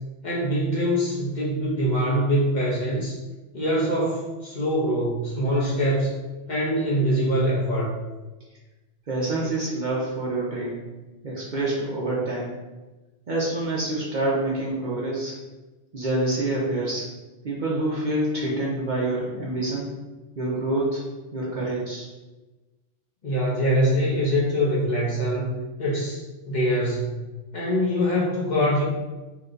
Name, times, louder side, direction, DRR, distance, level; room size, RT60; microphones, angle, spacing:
voice 1, 0.2-3.1 3.5-6.1 6.5-8.0 23.2-26.2 26.5-27.2 27.5-28.8, equal, 45° left, -7 dB, 0.7 m, -23 dB
voice 2, 9.1-10.8 11.2-12.5 13.3-15.3 15.9-17.1 17.4-19.9 20.4-21.0 21.3-22.1, right 2 dB, 50° right, -5 dB, 0.6 m, -27 dB
2.9 x 2.2 x 3.7 m, 1.2 s
omnidirectional pair, 1.2 m